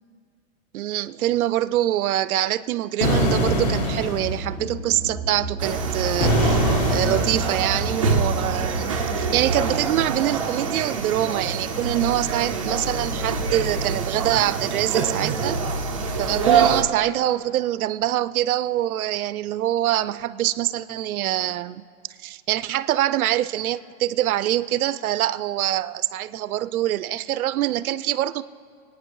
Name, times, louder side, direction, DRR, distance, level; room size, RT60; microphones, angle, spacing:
voice 1, 0.7-15.6 16.2-21.8 22.2-28.4, right 13 dB, 80° right, 15 dB, 0.6 m, -24 dB
sound 1, 3.0-4.4 6.2-7.6, equal, 40° left, 1.4 m, -22 dB
sound 2, 3.1-9.5, right 2 dB, 70° left, 3.8 m, -32 dB
sound 3, 5.6-16.8, right 5 dB, 25° right, 0.4 m, -25 dB
24.0 x 9.4 x 3.1 m, 2.2 s
supercardioid pair, 180°, 43 cm